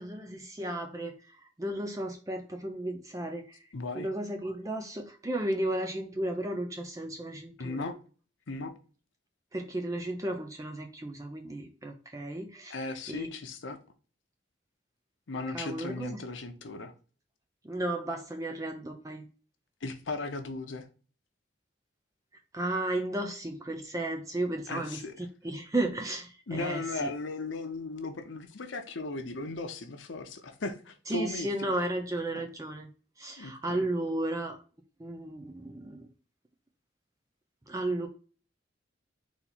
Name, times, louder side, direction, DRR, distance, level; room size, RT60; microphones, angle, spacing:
voice 1, 0.0-3.6 4.0-7.9 9.5-12.8 13.1-13.3 15.5-16.2 17.6-19.3 22.5-25.0 25.4-27.1 31.1-32.9 33.2-34.6 35.0-36.1 37.7-38.1, right 1 dB, 15° right, 0.4 m, -34 dB
voice 2, 3.7-4.1 7.6-7.9 8.5-8.7 12.7-13.8 15.3-16.9 19.8-20.9 24.7-25.1 26.5-31.5 32.3-32.4 33.4-33.8, left 3 dB, 80° left, 0.7 m, -36 dB
4.2 x 2.8 x 4.1 m
head